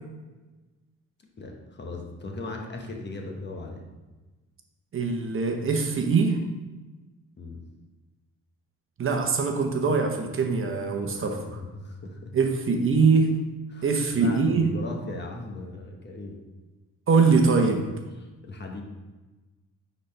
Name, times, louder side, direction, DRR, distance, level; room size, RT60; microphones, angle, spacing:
voice 1, 1.4-3.8 7.4-7.6 11.0-12.3 13.7-16.4 18.2-18.8, left 2 dB, 35° left, 1 dB, 1.2 m, -38 dB
voice 2, 4.9-6.4 9.0-11.6 12.3-13.3 13.8-14.7 17.1-17.8, right 4 dB, 45° right, 4 dB, 0.9 m, -22 dB
9.9 x 4.1 x 3.3 m, 1.2 s
cardioid pair, 90°, 30 cm